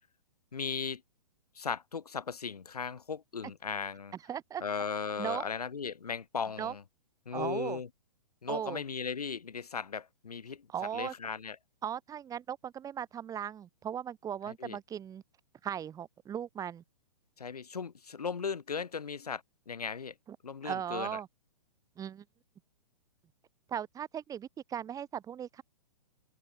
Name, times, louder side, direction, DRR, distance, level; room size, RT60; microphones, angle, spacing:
voice 1, 0.5-1.0 1.5-4.1 4.6-6.8 7.2-7.9 8.4-10.7 10.9-11.6 14.4-14.8 17.4-20.1 20.4-21.2, left 6 dB, 80° left, 5.0 m, -37 dB
voice 2, 4.3-4.6 5.2-5.4 6.6-6.7 7.3-7.8 8.5-8.8 10.7-11.1 11.8-15.2 15.6-16.8 20.3-20.4 20.6-21.3 22.0-22.2 23.7-25.6, right 9 dB, 20° right, 4.8 m, -37 dB
open air
hypercardioid pair, 130°, 19 cm